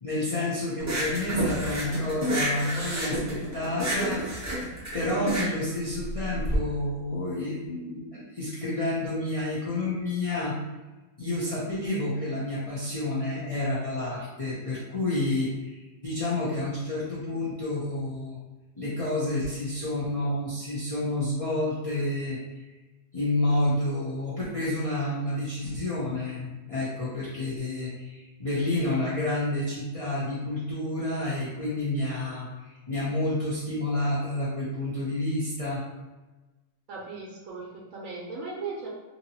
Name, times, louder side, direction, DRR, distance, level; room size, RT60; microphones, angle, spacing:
voice 1, 0.0-4.2 4.9-10.6 11.2-18.4 18.8-22.4 23.1-35.8, left 1 dB, 40° left, -8 dB, 0.5 m, -29 dB
sound 1, 0.8-6.6, right 1 dB, 25° right, 0.4 m, -29 dB
voice 2, 36.9-38.9, right 4 dB, 70° right, -4 dB, 1.0 m, -37 dB
2.8 x 2.7 x 2.8 m, 1.2 s
omnidirectional pair, 1.4 m